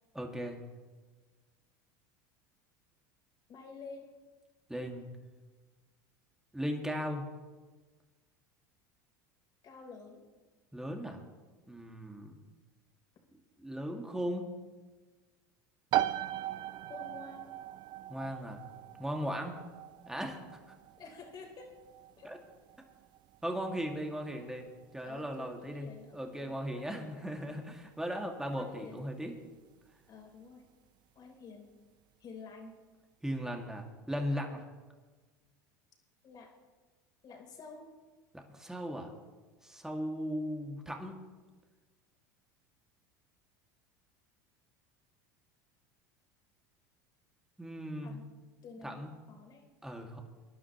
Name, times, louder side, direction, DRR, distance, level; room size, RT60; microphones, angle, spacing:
voice 1, 0.1-0.6 4.7-5.1 6.5-7.3 10.7-11.2 11.7-12.4 13.6-14.5 18.1-18.6 19.0-19.7 20.1-20.6 22.2-22.4 23.4-24.7 24.9-25.9 26.1-29.3 33.2-34.6 38.3-39.1 39.6-41.2 47.6-48.2 48.8-49.1 49.8-50.2, equal, 5° right, 2 dB, 2.1 m, -37 dB
voice 2, 3.5-4.1 9.6-10.2 16.9-17.5 21.0-21.8 22.2-22.3 25.0-27.6 28.5-29.0 30.1-30.6 31.2-31.7 32.2-32.7 36.2-36.5 37.2-37.9 48.0-48.3 48.6-49.6, left 4 dB, 45° left, 1 dB, 3.5 m, -50 dB
sound 1, 15.9-30.4, right 13 dB, 50° right, 0.4 m, -40 dB
23.5 x 11.0 x 3.1 m, 1.3 s
hypercardioid pair, 90°, 10 cm